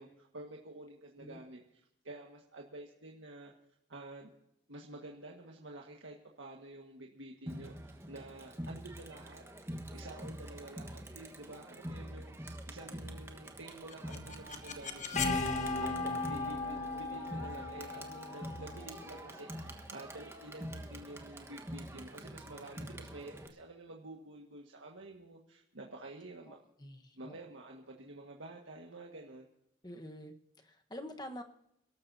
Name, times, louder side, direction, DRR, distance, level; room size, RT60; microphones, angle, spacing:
voice 1, 0.0-3.5 3.9-4.3 4.7-15.4 15.8-26.6 27.1-29.5, right 2 dB, 85° right, 0 dB, 1.7 m, -50 dB
Crowd, 7.5-23.5, right 1 dB, 15° right, 1.3 m, -46 dB
sound 1, 13.7-19.6, left 3 dB, 40° left, 1.4 m, -37 dB
voice 2, 26.5-27.4 29.8-31.4, equal, 20° left, 5 dB, 1.2 m, -47 dB
29.0 x 13.0 x 2.7 m, 0.75 s
head